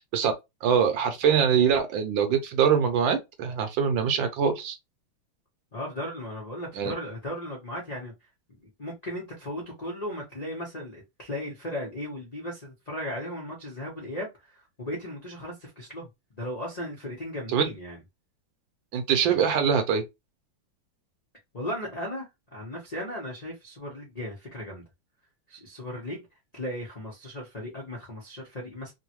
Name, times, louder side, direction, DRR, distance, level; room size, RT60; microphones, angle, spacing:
voice 1, 0.6-4.8 6.8-6.9 17.5-17.6 18.9-20.0, right 7 dB, 70° right, 1.2 m, -23 dB
voice 2, 5.7-8.1 8.6-16.1 16.3-18.0 21.5-24.8 25.5-26.3 26.5-28.9, left 1 dB, 85° left, 0.3 m, -36 dB
3.6 x 2.1 x 2.9 m
omnidirectional pair, 2.4 m